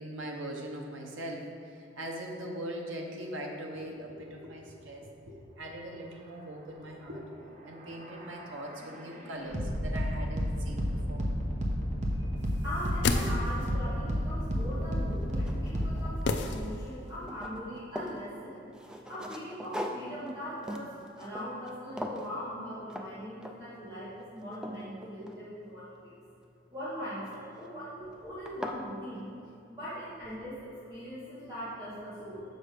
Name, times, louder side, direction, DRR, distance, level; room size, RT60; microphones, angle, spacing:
voice 1, 0.0-7.2 7.6-11.3 14.6-14.7 31.4-31.5, right 1 dB, 85° right, 0 dB, 1.0 m, -41 dB
sound 1, 7.5-16.2, equal, 40° right, 0.9 m, -32 dB
voice 2, 12.1-18.6 19.1-26.2 26.7-29.3 29.7-32.4, equal, 20° right, -13 dB, 1.6 m, -40 dB
sound 2, 12.7-13.9 16.3-17.2 17.4-17.5, left 3 dB, 60° left, 0.4 m, -32 dB
sound 3, 14.5-14.6 15.1-16.6 16.8-18.2 18.7-21.7 22.0-22.3 22.9-23.1 23.4-23.8 24.2-25.8 27.3-27.7 28.1-28.2 28.5-28.8, equal, 5° right, 0.3 m, -41 dB
6.7 x 5.2 x 5.1 m, 2.7 s
head